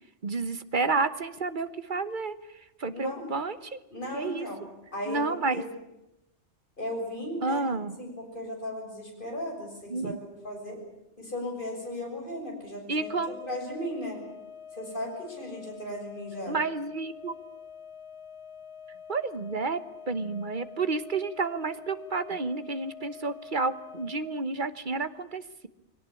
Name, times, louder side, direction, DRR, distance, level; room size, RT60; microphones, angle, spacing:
voice 1, 0.2-2.3 2.8-3.8 4.1-4.5 5.1-5.6 7.4-8.0 9.9-10.2 12.9-13.4 16.5-17.4 19.1-25.7, right 3 dB, 45° right, 13 dB, 1.2 m, -30 dB
voice 2, 2.9-3.3 3.9-4.6 4.9-5.2 5.5-5.7 6.8-7.6 8.0-10.2 10.4-10.8 11.2-14.2 14.7-16.6, left 1 dB, 45° left, 1 dB, 6.9 m, -36 dB
sound 1, 12.9-24.5, left 7 dB, 65° left, 2.7 m, -46 dB
22.5 x 18.0 x 9.8 m, 0.91 s
omnidirectional pair, 1.2 m